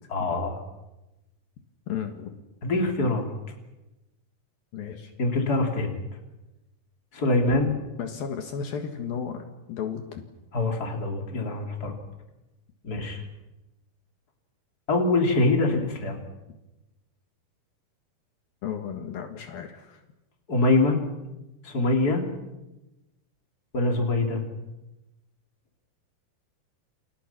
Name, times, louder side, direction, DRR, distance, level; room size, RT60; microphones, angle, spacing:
voice 1, 0.1-0.6 2.6-3.3 5.2-5.9 7.1-7.7 10.5-12.0 12.8-13.2 14.9-16.2 20.5-21.0 21.6-22.2 23.7-24.4, left 2 dB, 25° left, 2 dB, 3.8 m, -24 dB
voice 2, 1.9-2.3 4.7-5.1 8.0-10.2 18.6-20.0, left 7 dB, 70° left, 5 dB, 3.3 m, -34 dB
29.0 x 28.0 x 6.1 m, 1.0 s
omnidirectional pair, 4.5 m